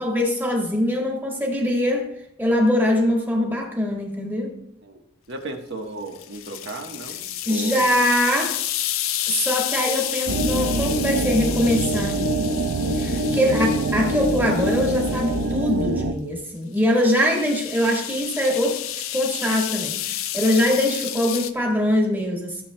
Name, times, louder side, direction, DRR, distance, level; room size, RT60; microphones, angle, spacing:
voice 1, 0.0-2.1 2.4-4.5 7.5-8.6 9.3-12.3 13.0-18.8 19.1-22.6, left 1 dB, 10° right, -1 dB, 1.6 m, -22 dB
voice 2, 5.3-7.9 13.4-13.7, right 2 dB, 60° right, 3 dB, 1.2 m, -35 dB
sound 1, 6.1-15.6 16.8-21.5, left 12 dB, 70° left, 0.5 m, -31 dB
sound 2, 10.3-16.1, right 1 dB, 80° right, 0.7 m, -24 dB
14.5 x 7.2 x 2.2 m, 0.76 s
head